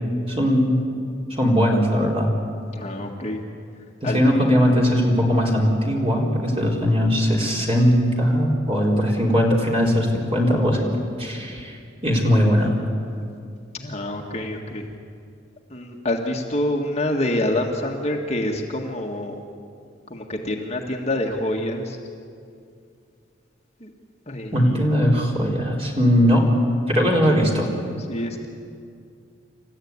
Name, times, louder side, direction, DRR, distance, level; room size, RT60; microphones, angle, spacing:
voice 1, 0.3-0.8 1.3-2.4 4.0-10.9 11.2-12.7 24.5-26.4 26.9-27.7, equal, 30° right, -2 dB, 4.1 m, -19 dB
voice 2, 2.7-3.4 4.0-4.4 13.7-14.9 15.7-19.3 20.1-22.0 23.8-23.9 24.3-24.9 28.1-28.5, left 1 dB, 35° left, 1 dB, 1.8 m, -27 dB
28.0 x 15.0 x 9.7 m, 2.4 s
head